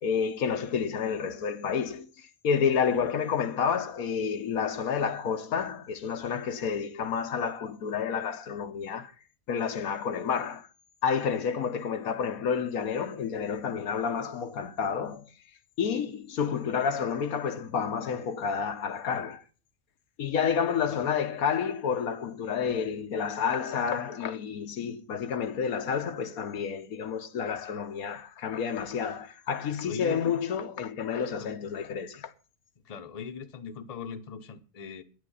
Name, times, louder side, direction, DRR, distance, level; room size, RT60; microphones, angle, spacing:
voice 1, 0.0-9.1 9.5-10.7 11.0-15.3 15.8-19.4 20.2-32.3, left 6 dB, 90° left, 1.5 m, -30 dB
voice 2, 29.8-30.2 31.4-31.5 32.8-35.0, left 6 dB, 30° left, 0.8 m, -40 dB
11.0 x 9.3 x 5.5 m
omnidirectional pair, 1.5 m